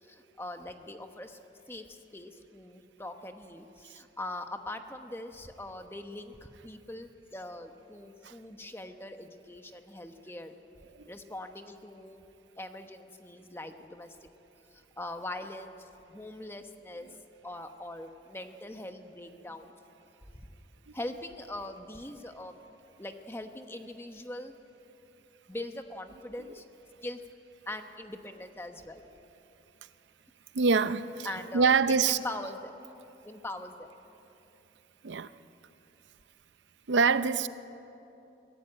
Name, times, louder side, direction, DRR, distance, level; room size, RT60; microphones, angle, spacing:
voice 1, 0.0-1.4 1.7-10.5 11.1-12.3 12.6-14.2 14.7-17.1 17.4-19.7 20.3-20.5 20.9-22.6 23.0-24.6 25.5-26.6 27.0-27.2 27.7-29.0 31.2-31.7 32.1-32.7 33.2-33.9, left 1 dB, 15° left, 6 dB, 1.0 m, -42 dB
voice 2, 30.5-31.3 31.5-32.2 35.0-35.3 36.9-37.5, right 5 dB, 85° right, 13 dB, 0.6 m, -25 dB
23.5 x 15.0 x 8.9 m, 2.9 s
head